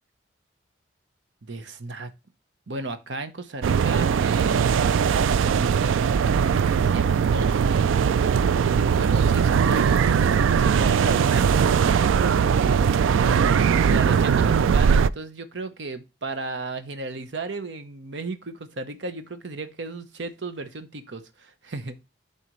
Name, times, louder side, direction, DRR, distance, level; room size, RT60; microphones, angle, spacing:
voice 1, 1.4-2.1 2.7-6.0 6.7-7.9 8.9-12.9 13.9-22.0, right 3 dB, 65° right, 0.9 m, -35 dB
sound 1, 3.6-15.1, right 7 dB, 85° right, 0.3 m, -20 dB
11.5 x 4.1 x 3.0 m
head